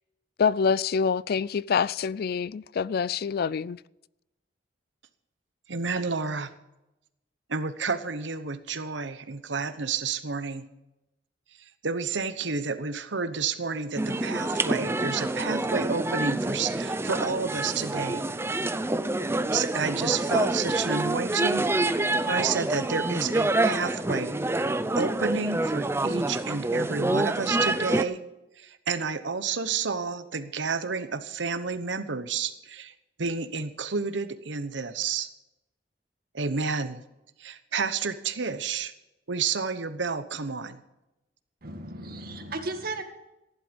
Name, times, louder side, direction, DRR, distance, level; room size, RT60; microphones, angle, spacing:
voice 1, 0.4-3.8, left 6 dB, 55° left, 0.4 m, -26 dB
voice 2, 5.7-6.5 7.5-10.6 11.8-18.2 19.5-21.7 22.3-24.4 25.0-28.2 28.6-32.9 33.2-35.3 36.3-37.0 37.4-38.9 39.3-40.8, right 5 dB, 75° right, 1.0 m, -30 dB
sound 1, 14.0-28.0, right 2 dB, 15° right, 0.5 m, -27 dB
voice 3, 41.6-43.0, right 2 dB, 55° right, 2.0 m, -35 dB
15.5 x 11.0 x 5.3 m
head